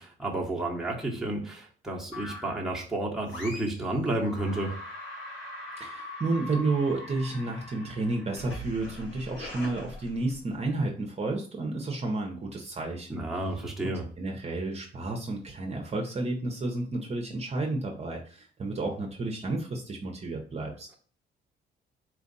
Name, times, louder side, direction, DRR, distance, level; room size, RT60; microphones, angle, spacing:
voice 1, 0.0-4.8 13.1-14.0, right 1 dB, ahead, -2 dB, 1.2 m, -31 dB
sound 1, 2.1-2.7 3.3-3.9 4.2-10.6, left 1 dB, 70° left, 1.7 m, -42 dB
voice 2, 5.8-13.3 13.8-20.9, right 2 dB, 35° right, 1 dB, 0.8 m, -31 dB
4.5 x 2.4 x 4.0 m, 0.43 s
cardioid pair, 90°, 20 cm